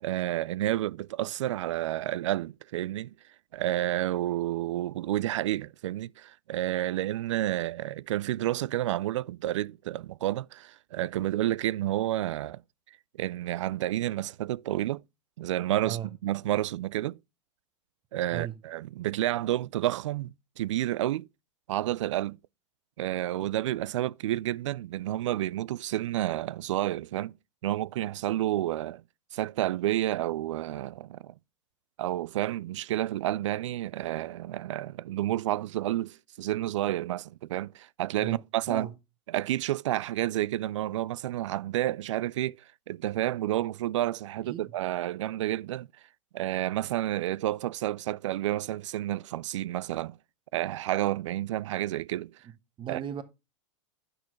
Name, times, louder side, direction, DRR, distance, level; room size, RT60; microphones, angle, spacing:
voice 1, 0.0-3.1 3.5-12.6 13.2-15.0 15.4-17.2 18.1-21.3 21.7-22.4 23.0-27.3 27.6-29.0 29.3-31.3 32.0-38.9 39.3-42.6 42.9-45.9 46.3-50.2 50.5-52.3 52.9-53.0, right 14 dB, 80° right, 0.4 m, -30 dB
voice 2, 52.8-53.2, right 9 dB, 30° right, 1.4 m, -35 dB
10.5 x 5.9 x 3.1 m
hypercardioid pair, 115°, 15 cm